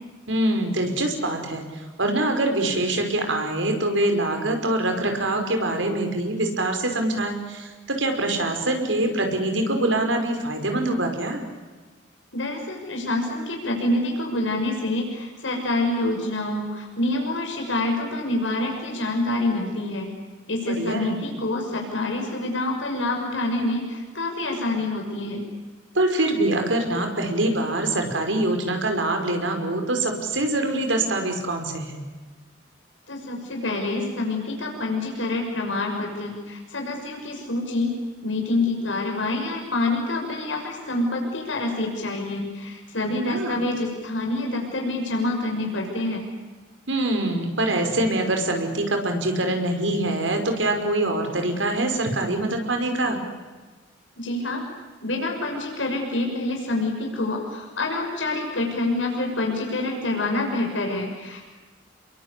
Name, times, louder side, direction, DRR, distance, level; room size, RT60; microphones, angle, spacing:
voice 1, 0.3-11.4 20.7-21.2 25.9-32.0 43.0-43.6 46.9-53.2, right 1 dB, 85° right, 5 dB, 5.7 m, -24 dB
voice 2, 12.3-20.1 20.5-25.4 33.1-38.0 38.2-46.2 54.2-54.6 55.0-61.4, left 2 dB, 85° left, 1 dB, 6.2 m, -27 dB
29.5 x 22.5 x 8.5 m, 1.3 s
head